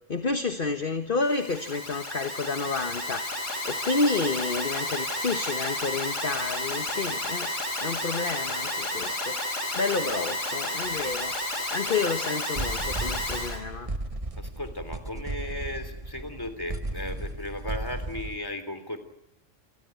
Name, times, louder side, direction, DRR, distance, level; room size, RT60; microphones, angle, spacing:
voice 1, 0.1-3.3 3.6-7.5 7.8-9.4 9.7-11.3 11.7-13.9, left 4 dB, 45° left, 7 dB, 1.5 m, -30 dB
Alarm, 1.2-13.6, left 1 dB, 85° left, 5.2 m, -31 dB
sound 1, 10.8-11.2 11.6-11.7 12.1-12.2 12.5-18.4, right 2 dB, 25° right, 1.7 m, -35 dB
voice 2, 14.4-19.0, left 1 dB, 15° left, 9 dB, 3.4 m, -36 dB
28.0 x 20.5 x 9.4 m, 0.84 s
omnidirectional pair, 1.3 m